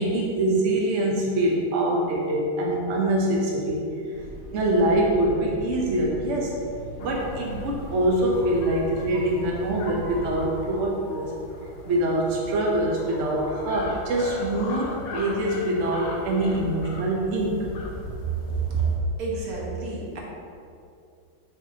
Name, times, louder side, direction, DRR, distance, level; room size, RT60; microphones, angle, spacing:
voice 1, 0.0-3.9 4.5-6.6 7.0-11.3 11.8-17.7, right 1 dB, 65° right, -2 dB, 0.7 m, -24 dB
sound 1, 4.1-10.3, left 1 dB, 90° left, 2.3 m, -40 dB
sound 2, 7.0-19.0, left 2 dB, 65° left, 1.4 m, -39 dB
voice 2, 19.2-20.2, right 4 dB, 50° right, -3 dB, 1.2 m, -30 dB
7.4 x 5.5 x 2.8 m, 2.5 s
omnidirectional pair, 2.3 m